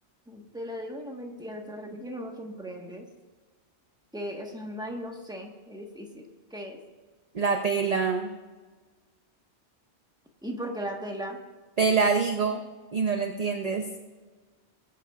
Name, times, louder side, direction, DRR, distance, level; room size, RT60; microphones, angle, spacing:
voice 1, 0.3-3.0 4.1-6.8 10.4-11.4, equal, 5° right, 1 dB, 1.3 m, -37 dB
voice 2, 7.3-8.3 11.8-12.6 12.9-13.9, right 5 dB, 40° right, 4 dB, 0.7 m, -25 dB
19.5 x 9.1 x 2.5 m, 1.4 s
omnidirectional pair, 1.2 m